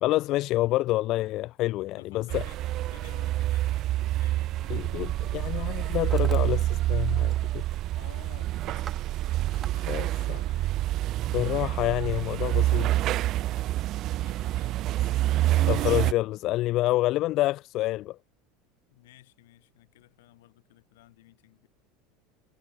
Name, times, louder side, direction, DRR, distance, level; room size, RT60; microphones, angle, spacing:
voice 1, 0.0-2.5 4.7-7.6 9.9-10.4 11.3-12.9 15.7-18.2, left 17 dB, 55° left, 0.4 m, -28 dB
voice 2, 2.0-4.9 7.8-10.8 12.8-13.7 14.2-14.9 18.9-21.7, left 17 dB, 80° left, 3.0 m, -54 dB
sound 1, 2.3-16.1, right 15 dB, 50° right, 0.4 m, -27 dB
Hammer, 5.8-6.6 6.9-7.4 7.7-8.0 8.4-9.7, right 6 dB, 25° right, 3.6 m, -46 dB
hypercardioid pair, 90°, 0 cm